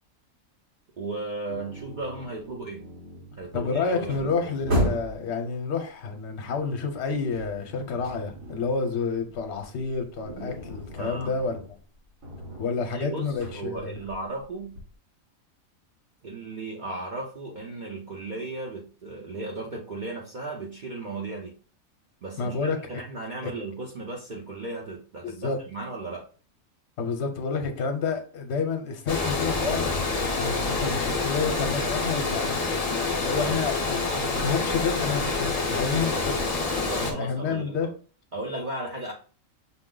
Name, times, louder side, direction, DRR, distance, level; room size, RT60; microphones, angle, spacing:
voice 1, 1.0-2.8 3.4-4.3 10.9-11.4 12.9-14.7 16.2-21.5 22.2-26.2 33.3-34.0 36.9-37.9 38.3-39.1, right 2 dB, 45° right, 0.7 m, -36 dB
sound 1, 1.5-5.3 6.7-8.8 9.1-14.9, equal, 80° right, 2.2 m, -35 dB
voice 2, 3.5-11.6 12.6-14.0 22.4-23.0 23.4-23.5 25.2-25.6 27.0-32.6 33.2-36.5 37.0-37.9, left 5 dB, 55° left, 1.0 m, -29 dB
Water, 29.1-37.1, left 3 dB, 35° left, 0.6 m, -27 dB
5.9 x 2.0 x 3.8 m
omnidirectional pair, 1.4 m